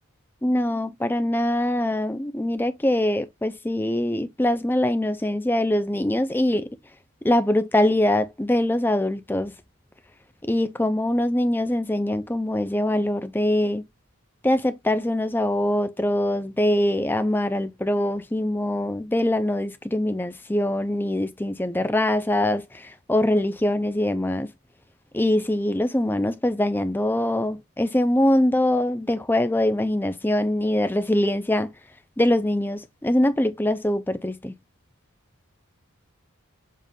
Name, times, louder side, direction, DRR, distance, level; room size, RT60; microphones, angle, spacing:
voice 1, 0.4-6.7 7.2-9.5 10.5-13.8 14.4-24.5 25.1-31.7 32.2-34.5, left 1 dB, 10° left, 0.4 m, -23 dB
7.4 x 2.5 x 5.2 m
head